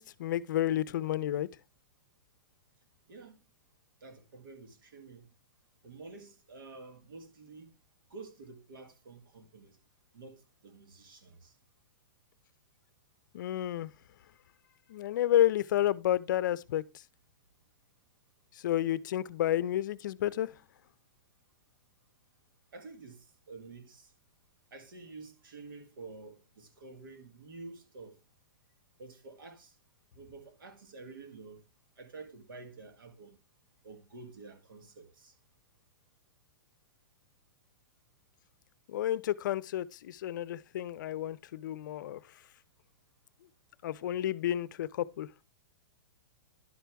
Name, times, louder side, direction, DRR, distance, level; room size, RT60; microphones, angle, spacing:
voice 1, 0.0-1.5 13.3-13.9 14.9-16.8 18.6-20.5 38.9-42.2 43.8-45.3, left 12 dB, 65° left, 0.5 m, -30 dB
voice 2, 4.0-5.3 5.8-7.7 8.1-9.8 10.1-11.6 22.7-24.1 24.7-28.2 29.0-29.8 30.1-31.6 32.0-33.4 33.8-35.3, right 3 dB, 85° right, 1.8 m, -49 dB
11.0 x 6.1 x 3.4 m
hypercardioid pair, 150°, 11 cm